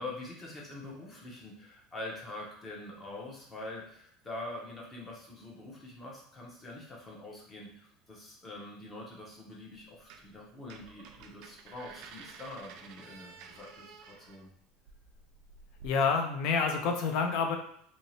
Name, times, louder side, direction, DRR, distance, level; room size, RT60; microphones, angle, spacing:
voice 1, 0.0-14.5, left 2 dB, 15° left, -3 dB, 0.7 m, -44 dB
sound 1, 9.7-10.4 10.6-15.9, right 5 dB, 55° right, 0.3 m, -52 dB
voice 2, 15.8-17.6, left 5 dB, 55° left, 5 dB, 0.5 m, -28 dB
2.8 x 2.7 x 3.1 m, 0.67 s
cardioid pair, 160°, 0 cm